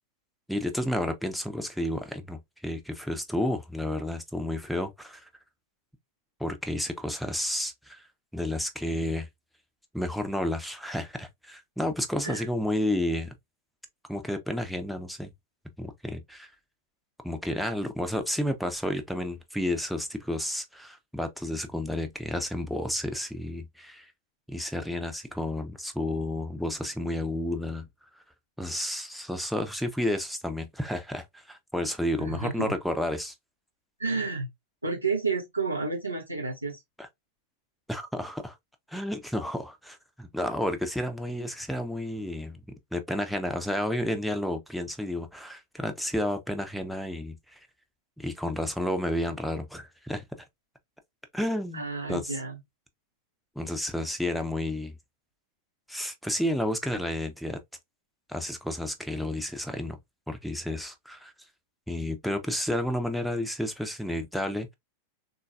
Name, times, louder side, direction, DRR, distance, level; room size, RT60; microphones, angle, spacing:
voice 1, 0.5-5.3 6.4-8.1 8.3-9.3 9.9-13.3 14.1-15.3 15.8-16.5 17.2-24.1 24.5-27.9 28.6-33.3 37.0-37.1 37.9-38.6 38.9-42.6 42.9-47.6 48.2-50.2 51.3-52.4 53.6-55.0 55.9-57.6 58.3-60.0 60.3-61.3 61.9-64.7, left 1 dB, ahead, 0.6 m, -31 dB
voice 2, 32.2-32.7 34.0-34.5 34.8-36.8 51.7-52.6, right 4 dB, 85° right, 0.6 m, -31 dB
3.8 x 2.4 x 2.3 m
figure-of-eight pair, 90°, 0 cm